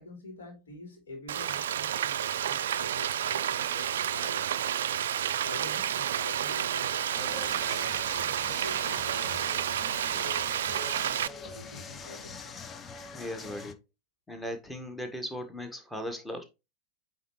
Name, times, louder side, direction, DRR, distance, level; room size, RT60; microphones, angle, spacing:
voice 1, 0.0-4.5 5.1-8.0 8.4-11.0 11.4-12.6, left 1 dB, 65° left, 3.2 m, -47 dB
Frying (food), 1.3-11.3, right 10 dB, 60° right, 0.3 m, -30 dB
sound 1, 7.1-13.7, left 5 dB, 25° left, 0.6 m, -44 dB
voice 2, 13.1-13.8 14.3-16.4, left 1 dB, 5° left, 1.3 m, -37 dB
8.8 x 4.0 x 3.0 m
figure-of-eight pair, 90°, 0 cm